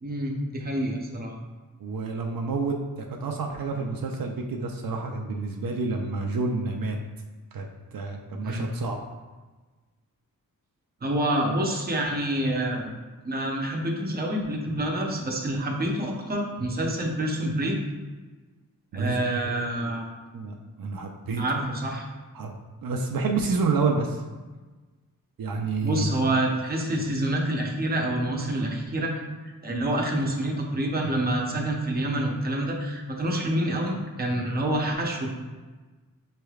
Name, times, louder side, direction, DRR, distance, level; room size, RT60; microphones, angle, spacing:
voice 1, 0.0-1.3 8.4-8.7 11.0-12.9 13.2-17.8 18.9-20.0 21.4-22.1 25.8-35.3, right 1 dB, 25° right, 0 dB, 0.7 m, -27 dB
voice 2, 1.8-2.8 3.2-7.0 7.5-7.7 7.9-9.0 18.9-19.9 20.3-21.4 22.3-24.2 25.4-26.0, right 4 dB, 75° right, 2 dB, 0.5 m, -29 dB
6.6 x 3.2 x 2.3 m, 1.3 s
wide cardioid pair, 135°, 35 cm